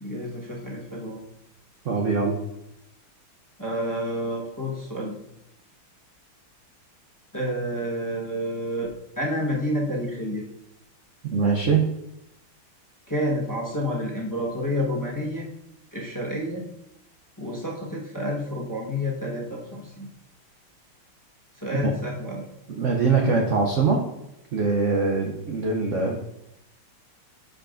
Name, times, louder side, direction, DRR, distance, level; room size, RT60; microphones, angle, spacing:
voice 1, 0.0-1.2 3.6-5.2 7.3-10.4 13.1-15.5 15.9-16.6 17.4-20.1 21.5-22.4, equal, 10° left, -4 dB, 0.9 m, -29 dB
voice 2, 1.8-2.4 11.2-11.9 21.7-21.8 22.7-24.0 24.5-26.2, right 4 dB, 65° right, 1 dB, 0.7 m, -22 dB
11.5 x 5.1 x 2.5 m, 0.84 s
omnidirectional pair, 2.2 m